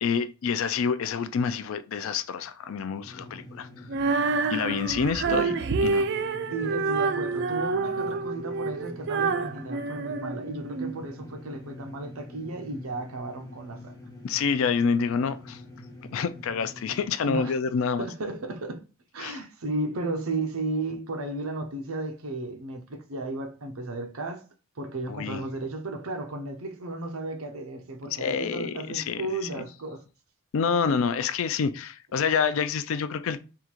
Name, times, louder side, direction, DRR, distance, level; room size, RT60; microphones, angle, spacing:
voice 1, 0.0-3.7 4.5-5.5 5.8-6.1 14.2-15.6 16.1-18.1 19.2-19.4 25.1-25.4 28.2-29.2 29.5-29.6 30.5-33.4, left 6 dB, 60° left, 0.4 m, -27 dB
sound 1, 3.0-17.1, left 1 dB, 15° left, 0.7 m, -46 dB
Female singing, 3.9-10.9, right 4 dB, 50° right, 0.3 m, -28 dB
voice 2, 6.5-13.9 17.3-17.6 18.0-18.8 19.1-24.5 24.8-30.0, right 2 dB, 70° right, 0.7 m, -34 dB
3.7 x 2.4 x 4.4 m
head